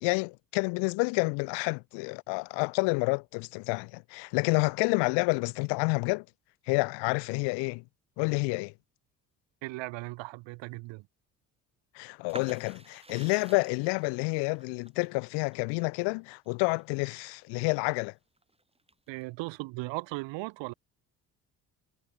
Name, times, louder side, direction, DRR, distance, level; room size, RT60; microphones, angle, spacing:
voice 1, 0.0-6.3 6.7-7.8 8.2-8.7 11.9-18.1, left 31 dB, 55° left, 0.6 m, -29 dB
voice 2, 9.6-11.1 19.1-20.7, right 22 dB, 60° right, 2.2 m, -37 dB
sound 1, 12.3-17.9 18.4-19.2, right 2 dB, 10° right, 5.7 m, -50 dB
figure-of-eight pair, 50°, 50 cm